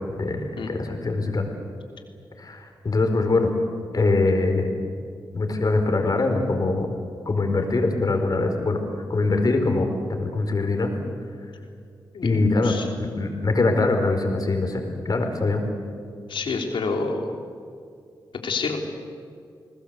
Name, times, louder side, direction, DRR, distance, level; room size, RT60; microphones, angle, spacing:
voice 1, 0.0-1.5 2.4-3.5 3.9-4.7 5.3-7.0 7.2-8.8 9.1-10.9 12.2-15.6, left 3 dB, 50° left, 5 dB, 4.9 m, -23 dB
voice 2, 12.1-12.9 16.3-17.3 18.4-18.8, left 4 dB, 85° left, 3 dB, 3.3 m, -28 dB
29.5 x 20.0 x 8.3 m, 2.3 s
cardioid pair, 70°, 8 cm